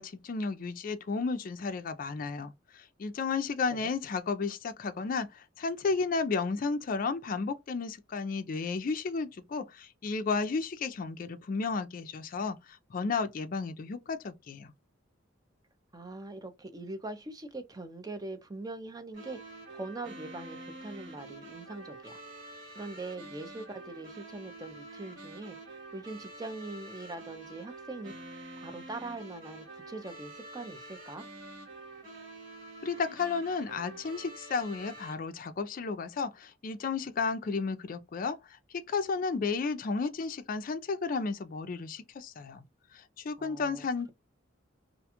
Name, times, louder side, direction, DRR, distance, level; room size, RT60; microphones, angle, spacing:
voice 1, 0.0-14.7 32.8-42.6 42.9-44.1, left 4 dB, 45° left, 0.4 m, -33 dB
voice 2, 15.9-19.4 19.7-22.2 22.8-31.2 43.4-44.1, right 2 dB, 20° right, 0.5 m, -42 dB
sound 1, 19.1-35.1, right 2 dB, 65° right, 1.3 m, -47 dB
2.5 x 2.3 x 2.8 m
head